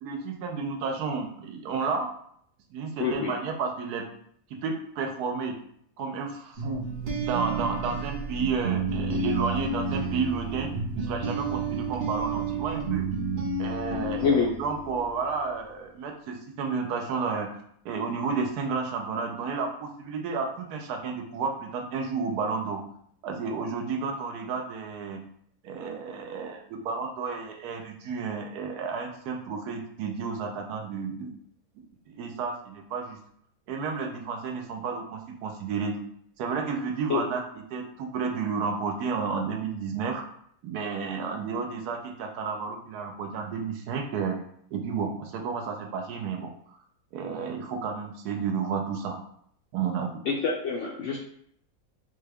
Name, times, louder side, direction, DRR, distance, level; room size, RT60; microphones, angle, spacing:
voice 1, 0.0-2.1 2.7-4.1 4.5-5.6 6.0-6.9 7.2-13.1 13.6-17.5 17.8-22.8 23.2-25.2 25.6-31.3 32.1-33.2 33.7-36.0 36.4-40.2 40.6-44.4 44.7-46.5 47.1-49.2 49.7-50.2, right 5 dB, 75° right, 3 dB, 1.1 m, -31 dB
voice 2, 3.0-3.3 14.2-14.5 37.1-37.2 50.3-51.2, left 5 dB, 70° left, -1 dB, 0.7 m, -26 dB
sound 1, 6.6-15.3, right 4 dB, 55° right, 0.7 m, -31 dB
3.7 x 2.2 x 3.4 m, 0.67 s
omnidirectional pair, 1.7 m